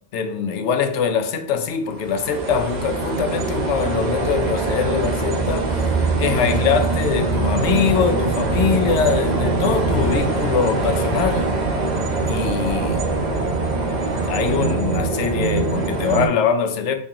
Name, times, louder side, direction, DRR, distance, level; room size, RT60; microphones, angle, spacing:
voice 1, 0.1-11.5 12.3-13.2 14.2-16.9, left 6 dB, 85° left, 0.9 m, -23 dB
sound 1, 1.9-16.3, right 3 dB, 45° right, 0.7 m, -22 dB
3.5 x 3.1 x 2.8 m
omnidirectional pair, 1.1 m